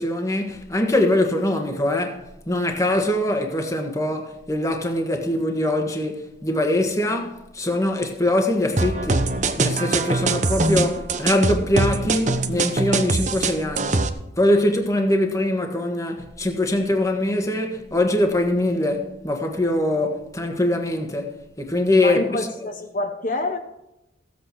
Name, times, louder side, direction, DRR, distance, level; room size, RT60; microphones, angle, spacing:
voice 1, 0.0-22.2, left 1 dB, 15° left, 1.5 m, -23 dB
sound 1, 8.8-14.1, right 3 dB, 40° right, 0.8 m, -23 dB
voice 2, 22.0-23.6, left 2 dB, 45° left, 1.1 m, -27 dB
15.5 x 8.2 x 4.7 m
head